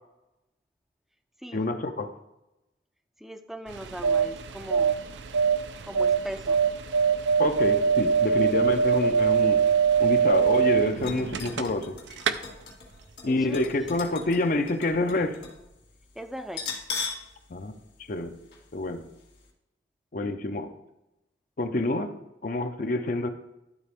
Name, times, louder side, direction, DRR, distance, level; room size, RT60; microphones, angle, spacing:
voice 1, 1.5-2.1 7.4-9.6 10.0-12.0 13.2-15.4 17.5-17.7 18.1-18.4 18.7-19.1 20.1-20.7 21.6-22.1 22.4-23.3, left 2 dB, 45° left, 7 dB, 0.6 m, -27 dB
voice 2, 3.2-5.0 5.8-6.6 13.3-14.4 16.2-16.7, equal, ahead, 7 dB, 0.4 m, -39 dB
sound 1, 3.7-11.9 12.2-12.3, right 6 dB, 80° right, 0.5 m, -23 dB
sound 2, 11.0-15.6 15.9-16.0 16.5-17.3 17.6-17.7 18.5-18.7 19.1-19.2, left 5 dB, 70° left, 2.3 m, -38 dB
12.0 x 4.1 x 3.5 m, 0.91 s
head